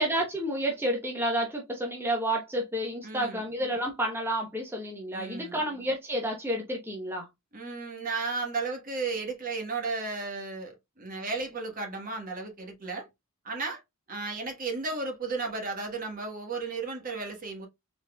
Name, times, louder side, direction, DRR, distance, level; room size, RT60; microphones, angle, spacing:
voice 1, 0.0-7.3, right 1 dB, 10° right, 0.8 m, -30 dB
voice 2, 3.0-3.4 5.1-5.6 7.5-13.1 13.4-13.8 14.1-17.7, right 3 dB, 40° right, 1.2 m, -34 dB
4.0 x 3.7 x 2.2 m
head